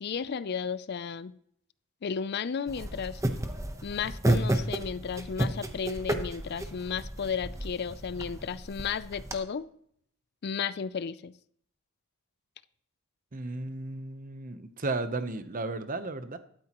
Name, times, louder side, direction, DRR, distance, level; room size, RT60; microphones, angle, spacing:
voice 1, 0.0-1.4 2.0-3.2 3.8-9.7 10.4-11.3, left 6 dB, 50° left, 16 dB, 0.4 m, -33 dB
sound 1, 2.7-9.3, right 1 dB, 15° right, 0.9 m, -32 dB
voice 2, 13.3-16.4, right 2 dB, 40° right, 10 dB, 0.9 m, -34 dB
13.0 x 12.5 x 3.0 m, 0.65 s
head